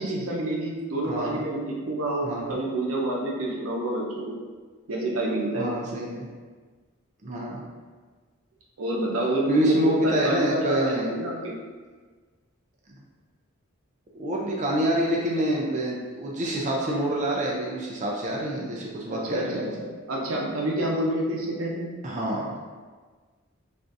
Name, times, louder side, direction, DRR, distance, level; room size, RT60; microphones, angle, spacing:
voice 1, 0.0-4.4 4.9-5.7 8.8-11.6 19.1-21.9, right 1 dB, 90° right, -2 dB, 0.6 m, -28 dB
voice 2, 1.0-1.4 2.2-2.6 5.5-6.3 7.2-7.6 9.5-11.1 14.1-19.7 22.0-22.5, right 1 dB, 35° right, -3 dB, 0.4 m, -27 dB
3.4 x 2.5 x 2.6 m, 1.4 s
head